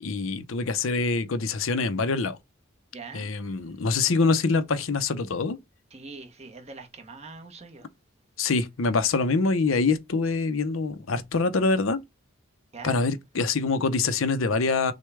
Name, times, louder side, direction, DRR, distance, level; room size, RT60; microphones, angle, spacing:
voice 1, 0.0-2.4 3.1-5.6 8.4-12.0 12.8-14.9, left 4 dB, 85° left, 0.6 m, -25 dB
voice 2, 2.9-3.3 5.9-7.9 12.7-13.0, right 4 dB, 30° right, 1.0 m, -42 dB
6.2 x 2.2 x 3.3 m
head